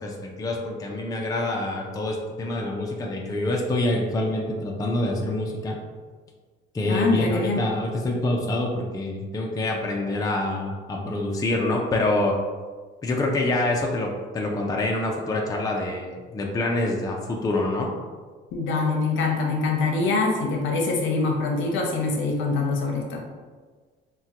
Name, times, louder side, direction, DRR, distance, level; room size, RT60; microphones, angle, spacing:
voice 1, 0.0-5.8 6.7-12.4 13.0-17.9, left 2 dB, 15° left, 0 dB, 0.4 m, -26 dB
voice 2, 6.9-7.7 18.5-23.2, left 3 dB, 70° left, 1 dB, 0.7 m, -24 dB
3.5 x 2.2 x 2.8 m, 1.5 s
cardioid pair, 105°, 20 cm